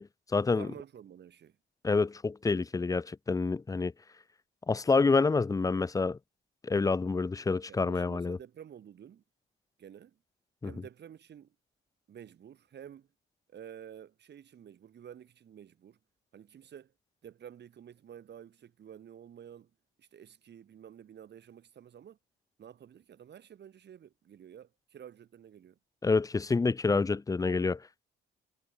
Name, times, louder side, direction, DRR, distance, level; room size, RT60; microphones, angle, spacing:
voice 1, 0.0-0.7 1.8-3.9 4.7-6.2 6.6-8.4 10.6-10.7 26.0-27.8, left 4 dB, 15° left, 0.5 m, -28 dB
voice 2, 0.5-1.6 7.7-9.2 9.8-10.2 10.6-11.6 12.1-13.1 13.5-16.0 16.3-16.9 17.2-19.7 20.0-22.2 22.6-25.8, right 9 dB, 60° right, 3.5 m, -50 dB
cardioid pair, 90°, 20 cm